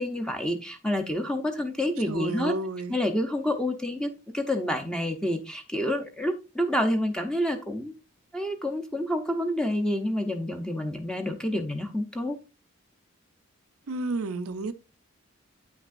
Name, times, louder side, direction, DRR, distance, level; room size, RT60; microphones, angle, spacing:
voice 1, 0.0-2.5 2.9-7.9 8.3-12.4, left 1 dB, 5° left, 0.7 m, -28 dB
voice 2, 2.1-3.0 13.9-14.7, right 3 dB, 80° right, 0.5 m, -31 dB
8.7 x 6.0 x 2.5 m
head